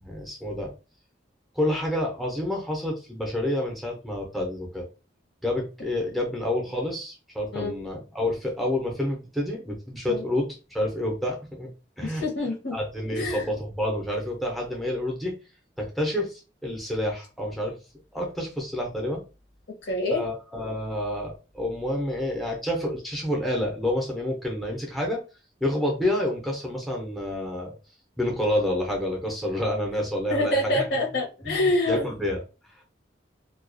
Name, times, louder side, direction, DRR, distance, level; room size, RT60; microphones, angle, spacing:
voice 1, 0.0-0.8 1.5-4.9 5.4-12.2 12.7-15.4 15.8-17.8 18.1-19.2 20.1-25.2 25.6-27.7 28.2-30.8 31.4-31.6 31.9-32.4, left 1 dB, ahead, -2 dB, 0.5 m, -28 dB
voice 2, 12.0-12.8 13.1-13.5 19.8-20.3 30.3-32.1, left 1 dB, 70° left, 0 dB, 0.8 m, -26 dB
2.3 x 2.2 x 2.5 m, 0.31 s
head